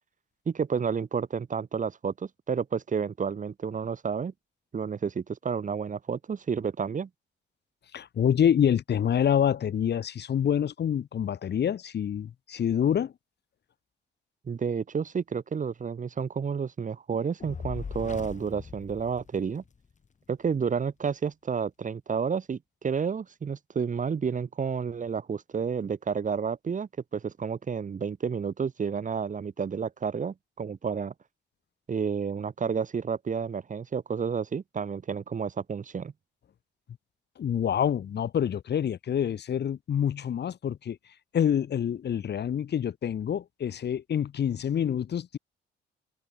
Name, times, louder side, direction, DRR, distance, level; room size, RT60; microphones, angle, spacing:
voice 1, 0.5-4.3 4.7-7.1 14.5-19.6 20.3-31.1 31.9-36.1, right 6 dB, 40° right, 2.2 m, -30 dB
voice 2, 7.9-13.1 37.4-41.0 41.3-45.4, left 9 dB, 55° left, 3.0 m, -27 dB
Fire, 17.4-19.9, left 5 dB, 40° left, 3.6 m, -40 dB
cardioid pair, 90°, 20 cm